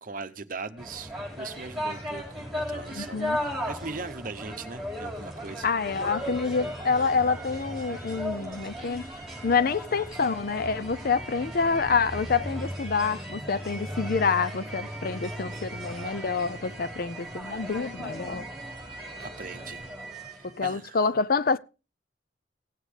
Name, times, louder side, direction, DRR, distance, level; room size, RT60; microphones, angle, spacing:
voice 1, 0.0-3.3 3.6-5.7 19.2-19.8 20.3-21.0, right 4 dB, 45° right, 0.8 m, -40 dB
sound 1, 0.8-20.6, equal, ahead, 4.6 m, -36 dB
voice 2, 2.9-3.4 5.6-9.1 9.4-18.5 20.4-21.6, left 5 dB, 50° left, 0.5 m, -27 dB
17.5 x 8.2 x 3.3 m
head